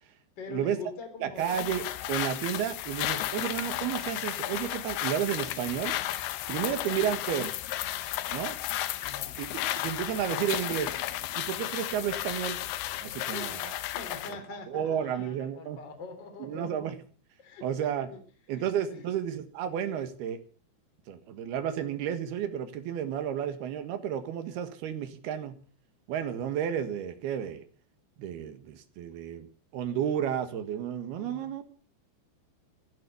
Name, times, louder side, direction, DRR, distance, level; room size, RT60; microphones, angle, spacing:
voice 1, 0.4-1.7 3.3-3.5 6.5-7.3 9.0-9.4 13.2-13.5 13.8-16.7 17.4-17.7 18.1-18.2 18.5-19.1 31.1-31.5, left 4 dB, 25° left, 6 dB, 3.6 m, -44 dB
voice 2, 1.2-6.0 6.5-7.5 8.3-8.6 9.4-9.5 9.8-10.9 11.4-12.6 13.0-13.7 14.3-14.4 14.7-15.8 16.4-17.0 17.6-18.1 18.5-20.4 21.1-25.6 26.1-27.6 28.2-29.5 29.7-31.6, right 9 dB, 65° right, 9 dB, 3.3 m, -32 dB
sound 1, 1.4-14.4, left 14 dB, 75° left, 2.6 m, -33 dB
15.5 x 12.0 x 6.9 m, 0.43 s
omnidirectional pair, 5.3 m